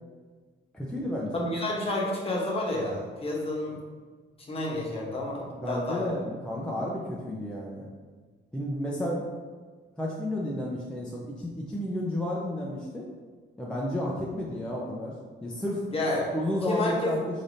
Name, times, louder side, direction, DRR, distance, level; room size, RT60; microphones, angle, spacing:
voice 1, 0.7-1.5 5.5-7.9 8.5-9.2 10.0-13.1 13.6-15.1 15.4-15.8 16.3-17.2, left 1 dB, 5° left, -4 dB, 0.5 m, -32 dB
voice 2, 1.3-3.8 4.5-6.1 15.9-16.4 16.6-17.1, left 1 dB, 30° left, -3 dB, 1.0 m, -30 dB
3.9 x 3.4 x 2.7 m, 1.4 s
cardioid pair, 90°, 20 cm